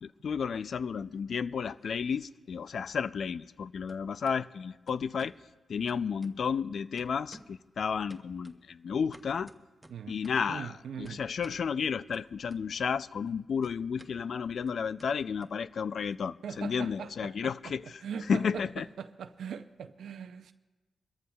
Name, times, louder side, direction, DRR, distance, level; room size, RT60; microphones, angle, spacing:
voice 1, 0.0-5.4 5.7-9.5 10.1-18.0 18.3-18.9, left 6 dB, 65° left, 0.3 m, -32 dB
sound 1, 0.9-1.7 2.0-3.6 3.9-4.4 4.9-5.4 5.9-6.7 7.0-7.7 8.1-10.5 11.1-11.7 12.1-13.0 13.2-16.1, right 1 dB, 5° right, 0.8 m, -57 dB
voice 2, 9.9-10.2 10.5-11.2 16.4-17.7 18.0-18.6 19.0-20.5, right 7 dB, 85° right, 0.5 m, -41 dB
26.0 x 13.5 x 2.3 m
cardioid pair, 90°, 0 cm